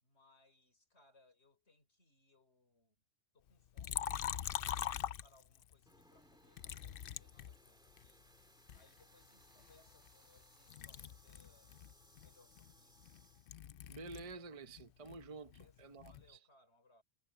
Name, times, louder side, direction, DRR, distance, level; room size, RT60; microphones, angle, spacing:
voice 1, 0.0-3.0 3.3-8.3 8.7-11.8 12.2-13.2 15.5-17.0, left 2 dB, 75° left, 4.8 m, -70 dB
Liquid, 3.8-5.7 6.6-8.1 8.7-10.4 10.7-14.4 14.7-16.3, left 9 dB, 60° left, 0.7 m, -43 dB
sound 1, 4.2-10.8, equal, 60° right, 7.3 m, -78 dB
sound 2, 5.9-13.5, equal, 5° right, 2.2 m, -67 dB
voice 2, 13.9-16.4, right 3 dB, 35° right, 0.8 m, -50 dB
omnidirectional pair, 1.1 m